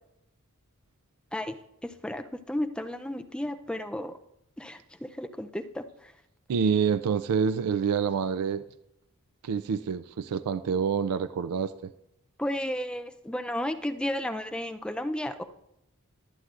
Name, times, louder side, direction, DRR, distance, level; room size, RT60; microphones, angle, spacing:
voice 1, 1.8-4.1 4.6-6.1 12.4-15.4, left 1 dB, 5° left, 7 dB, 0.4 m, -33 dB
voice 2, 6.5-8.6 9.4-11.9, right 6 dB, 85° right, 11 dB, 0.4 m, -27 dB
22.5 x 7.8 x 2.5 m, 0.83 s
head